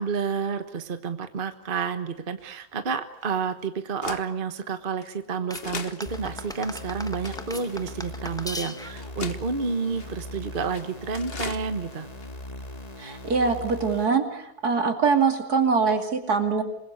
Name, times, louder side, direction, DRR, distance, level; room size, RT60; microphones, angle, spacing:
voice 1, 0.0-12.1, right 5 dB, 35° right, 9 dB, 1.4 m, -30 dB
sound 1, 2.4-2.5 3.2-3.3 4.0-4.2 5.0-5.1 5.5-6.0 6.6-6.7 7.2-7.8 8.4-8.5 9.0-9.4 10.0-10.2 10.6-10.8 11.1-11.6 11.9-12.0 12.2-12.3, left 5 dB, 40° left, 1.4 m, -37 dB
sound 2, 5.5-9.1, left 1 dB, 5° left, 1.0 m, -38 dB
sound 3, 6.1-14.1, left 1 dB, 25° left, 2.2 m, -40 dB
voice 2, 13.0-16.6, right 5 dB, 70° right, 5 dB, 3.2 m, -23 dB
27.0 x 21.0 x 8.3 m, 0.79 s
omnidirectional pair, 1.7 m